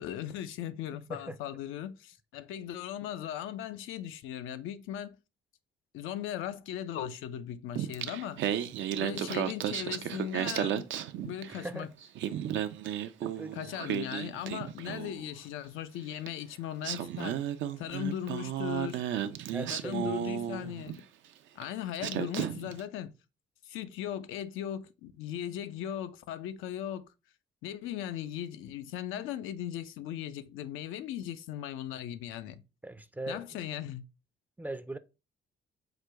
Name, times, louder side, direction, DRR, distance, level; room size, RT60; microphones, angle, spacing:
voice 1, 0.0-5.2 5.9-8.4 9.0-10.9 11.2-11.9 13.5-17.4 17.8-19.0 19.7-21.1 21.6-23.1 23.6-27.1 27.6-32.6 33.3-34.0, left 10 dB, 90° left, 0.4 m, -38 dB
Singing, 7.8-11.7 12.0-15.2 16.3-16.4 16.8-21.0 21.6-21.7 22.0-22.8, right 10 dB, 75° right, 0.5 m, -34 dB
voice 2, 11.5-11.9 13.2-13.6 19.5-20.1 20.6-20.7 32.8-33.4 34.6-35.0, right 1 dB, 10° right, 0.4 m, -40 dB
4.9 x 2.2 x 4.4 m
cardioid pair, 90°, 20 cm